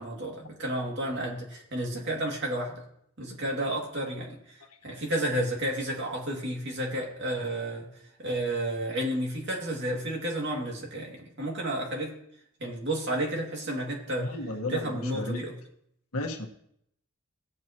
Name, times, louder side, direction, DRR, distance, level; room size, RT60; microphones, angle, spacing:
voice 1, 0.0-2.8 3.2-4.4 4.8-7.9 8.2-12.1 12.6-14.3 14.7-15.5, right 1 dB, 50° right, -1 dB, 2.5 m, -31 dB
voice 2, 14.2-15.4 16.1-16.5, left 2 dB, 85° left, 1 dB, 1.5 m, -33 dB
16.5 x 7.8 x 3.0 m, 0.73 s
head